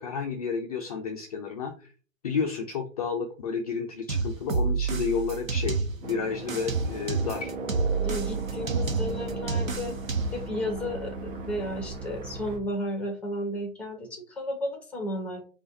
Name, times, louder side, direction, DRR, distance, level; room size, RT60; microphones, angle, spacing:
voice 1, 0.0-1.9 2.2-7.5, left 5 dB, 30° left, 2 dB, 0.5 m, -31 dB
sound 1, 4.1-6.1 6.5-10.5, right 4 dB, 85° right, 0.9 m, -29 dB
sound 2, 6.0-12.6, right 3 dB, 40° right, 1.3 m, -37 dB
voice 2, 8.0-10.0 10.3-15.4, equal, 5° left, 4 dB, 0.9 m, -33 dB
5.3 x 2.5 x 4.0 m, 0.39 s
figure-of-eight pair, 125°, 40 cm